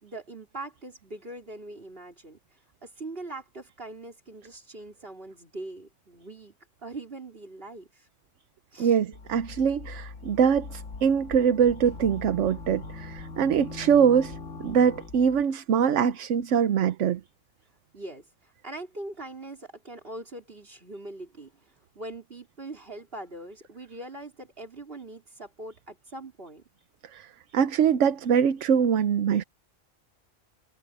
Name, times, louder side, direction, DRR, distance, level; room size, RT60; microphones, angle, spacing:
voice 1, 0.0-2.4 2.8-6.5 6.8-8.1 8.7-9.0 17.9-26.6, right 2 dB, 45° right, 4.4 m, -42 dB
voice 2, 8.8-17.2 27.1-27.3 27.5-29.4, right 7 dB, 70° right, 1.1 m, -23 dB
sound 1, 9.1-15.4, left 3 dB, 80° left, 2.1 m, -41 dB
omnidirectional pair, 1.3 m